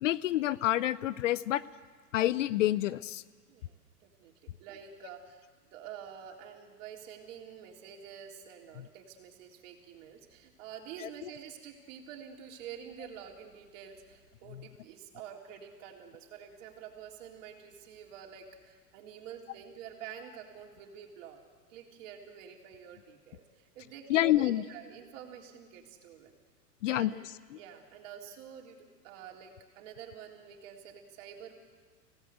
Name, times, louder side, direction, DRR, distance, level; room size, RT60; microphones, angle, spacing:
voice 1, 0.0-1.6 2.1-3.2 8.8-8.9 11.0-11.1 14.5-14.7 24.1-24.6 26.8-27.2 27.5-27.6, left 14 dB, 50° left, 18 dB, 0.6 m, -28 dB
voice 2, 3.5-4.3 4.6-21.4 21.7-26.3 26.9-27.2 27.5-31.5, right 8 dB, 50° right, 1 dB, 3.6 m, -48 dB
25.5 x 17.5 x 8.1 m, 1.5 s
hypercardioid pair, 110°, 48 cm